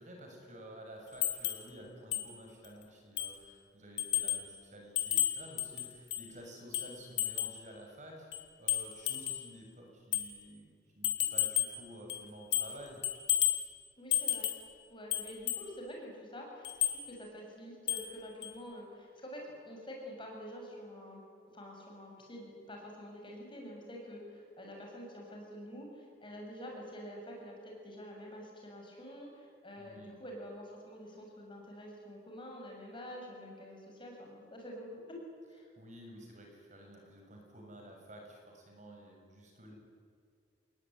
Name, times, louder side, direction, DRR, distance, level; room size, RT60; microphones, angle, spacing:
voice 1, 0.0-13.0 29.8-30.2 35.8-39.7, equal, 40° right, 1 dB, 6.7 m, -52 dB
sound 1, 1.2-1.7 2.1-2.3 2.6-2.7 3.2-3.4 4.0-4.5 5.0-6.3 6.7-7.6 8.3-9.5 10.1-10.3 11.0-11.8 12.1-12.8 13.0-13.7 14.1-14.7 15.1-15.7 16.6-17.0 17.9-18.1 18.4-18.5, left 12 dB, 75° left, 3.1 m, -32 dB
voice 2, 14.0-14.5 14.9-21.2 21.5-35.2 35.5-35.7, equal, 25° left, 0 dB, 7.2 m, -47 dB
28.0 x 20.5 x 10.0 m, 2.3 s
head